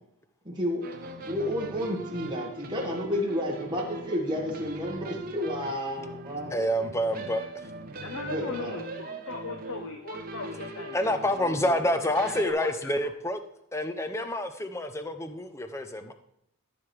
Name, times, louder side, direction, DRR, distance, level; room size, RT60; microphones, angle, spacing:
voice 1, 0.5-0.8 1.3-6.5 8.3-8.8, left 1 dB, 20° right, -2 dB, 1.7 m, -31 dB
sound 1, 0.8-12.5, right 2 dB, 40° right, 0.8 m, -40 dB
voice 2, 6.5-7.4 10.9-13.4 13.7-16.1, left 1 dB, 15° left, 8 dB, 0.5 m, -28 dB
voice 3, 8.0-11.2 12.2-13.1, left 3 dB, 65° left, 4 dB, 0.8 m, -39 dB
13.5 x 6.0 x 3.3 m, 0.75 s
head